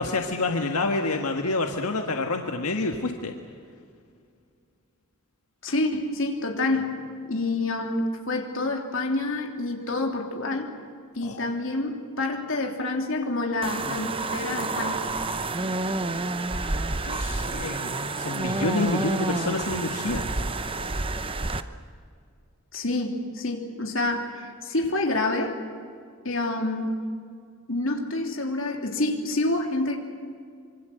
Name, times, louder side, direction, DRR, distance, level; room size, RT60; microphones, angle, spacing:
voice 1, 0.0-3.3 11.2-11.5 17.0-20.2, left 3 dB, 85° left, 3 dB, 1.6 m, -28 dB
voice 2, 5.6-6.9 7.3-10.7 11.1-15.0 22.7-25.6 26.2-27.0 27.7-30.0, left 2 dB, 60° left, 2 dB, 3.2 m, -27 dB
sound 1, 13.6-21.6, right 2 dB, 25° right, 0.8 m, -29 dB
25.5 x 24.0 x 7.9 m, 2.2 s
head